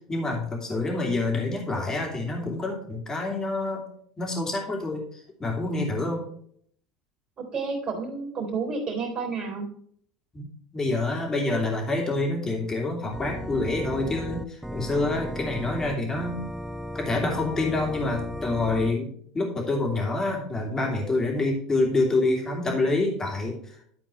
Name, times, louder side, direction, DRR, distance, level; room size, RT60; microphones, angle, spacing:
voice 1, 0.0-3.8 4.2-6.2 10.3-10.5 10.7-16.4 16.9-19.1 19.3-23.9, left 2 dB, 20° left, 0 dB, 2.9 m, -27 dB
voice 2, 7.5-9.7, right 4 dB, 35° right, 2 dB, 3.5 m, -30 dB
Organ, 13.1-18.9, equal, 5° right, 0.5 m, -35 dB
12.0 x 4.4 x 4.5 m, 0.64 s
hypercardioid pair, 95°, 3 cm